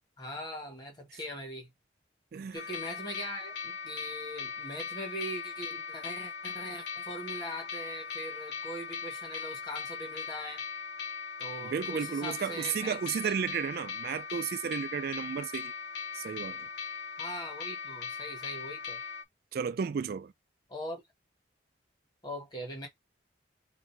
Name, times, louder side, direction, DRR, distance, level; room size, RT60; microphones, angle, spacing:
voice 1, 0.2-1.7 2.5-10.6 11.4-13.3 17.2-19.0 20.7-21.0 22.2-22.9, equal, 25° left, 1.4 m, -41 dB
sound 1, 2.6-19.2, left 6 dB, 70° left, 0.6 m, -39 dB
voice 2, 11.6-15.7 16.1-16.7 19.5-20.3, right 7 dB, 55° right, 0.3 m, -33 dB
3.1 x 2.7 x 4.5 m
head